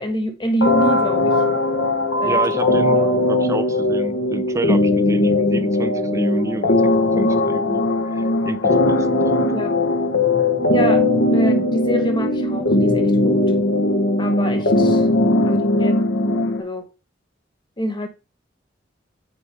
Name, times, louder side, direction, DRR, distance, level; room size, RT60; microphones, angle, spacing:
voice 1, 0.0-1.4 2.2-2.4 2.7-3.1 9.4-9.7 10.7-11.1 11.3-13.5 14.2-15.1 15.4-15.9 16.6-16.9 17.8-18.1, equal, 25° left, 1.3 m, -26 dB
sound 1, 0.6-16.6, left 2 dB, 75° left, 1.1 m, -19 dB
voice 2, 2.2-6.8 7.1-7.8 8.1-9.1 14.6-15.0, right 1 dB, 15° right, 0.6 m, -29 dB
8.7 x 4.8 x 3.4 m
head